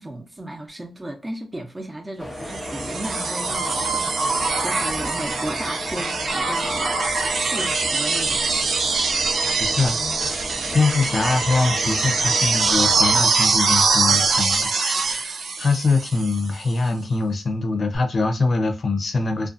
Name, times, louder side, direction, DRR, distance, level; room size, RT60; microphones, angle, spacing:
voice 1, 0.0-8.6, right 1 dB, 20° right, 0.8 m, -35 dB
sound 1, 2.2-13.3, left 1 dB, 10° left, 0.9 m, -34 dB
sound 2, 2.5-16.5 17.9-18.0, right 4 dB, 80° right, 0.5 m, -23 dB
voice 2, 9.6-10.3 10.7-19.5, left 3 dB, 55° left, 0.7 m, -23 dB
2.5 x 2.4 x 2.5 m
wide cardioid pair, 90°, 0 cm